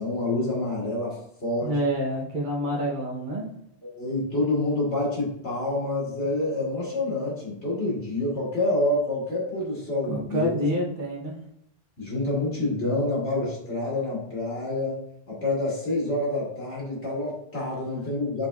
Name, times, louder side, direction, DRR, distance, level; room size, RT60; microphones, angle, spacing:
voice 1, 0.0-1.7 3.8-10.5 12.0-15.0 15.3-18.5, left 2 dB, 85° left, -6 dB, 2.1 m, -27 dB
voice 2, 1.6-3.4 10.1-11.4, equal, 50° right, -2 dB, 1.0 m, -27 dB
6.8 x 3.2 x 2.3 m, 0.73 s
omnidirectional pair, 1.1 m